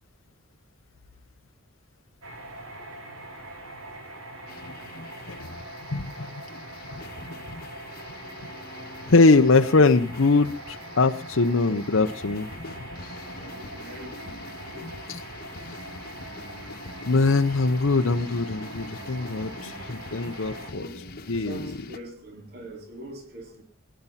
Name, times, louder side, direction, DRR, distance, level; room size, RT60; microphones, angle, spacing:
sound 1, 2.2-20.7, right 2 dB, 85° right, 3.1 m, -42 dB
sound 2, 4.5-22.0, left 3 dB, 45° left, 1.3 m, -43 dB
voice 1, 5.9-6.4 6.9-7.3 9.1-12.8 15.1-15.2 15.7-15.8 17.1-20.9 21.3-21.8, left 3 dB, 75° left, 6 dB, 0.8 m, -22 dB
voice 2, 13.4-15.1 19.6-19.9 20.6-23.6, right 1 dB, 50° right, 2 dB, 3.8 m, -44 dB
20.5 x 10.5 x 5.7 m, 0.40 s
head